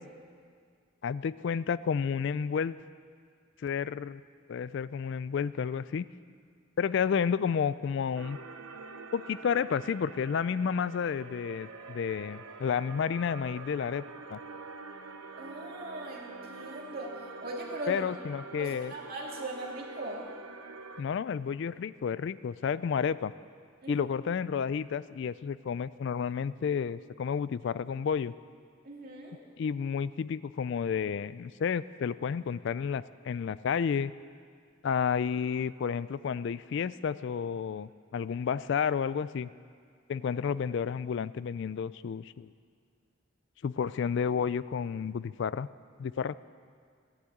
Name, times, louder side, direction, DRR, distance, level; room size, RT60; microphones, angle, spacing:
voice 1, 1.0-2.7 3.6-4.2 4.5-6.0 6.8-8.4 9.1-14.0 14.3-14.4 17.9-18.9 21.0-23.3 23.9-28.3 29.6-34.1 34.8-39.5 40.1-42.5 43.6-45.7 46.0-46.3, left 6 dB, 55° left, 16 dB, 0.3 m, -31 dB
sound 1, 8.2-21.0, right 4 dB, 90° right, 0.9 m, -46 dB
voice 2, 15.4-18.1 18.6-20.3 23.8-24.1 28.8-29.4, right 1 dB, 45° right, -2 dB, 2.5 m, -40 dB
14.5 x 10.0 x 8.6 m, 2.1 s
head